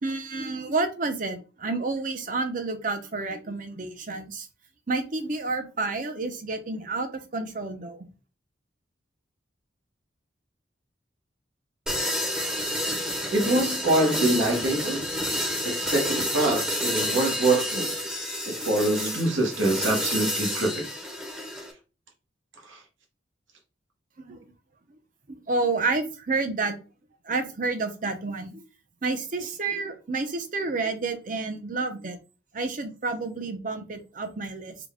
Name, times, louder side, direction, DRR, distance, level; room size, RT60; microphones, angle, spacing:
voice 1, 0.0-4.5 4.9-8.0 24.3-24.5 25.5-26.8 27.2-28.6 29.0-32.2 32.5-34.8, right 3 dB, 45° right, 0.7 m, -30 dB
sound 1, 11.9-21.7, equal, 5° right, 0.7 m, -29 dB
voice 2, 13.3-15.0 15.6-17.9 18.5-20.9 22.7-22.8, right 2 dB, 90° right, 1.2 m, -25 dB
3.8 x 2.3 x 3.6 m
head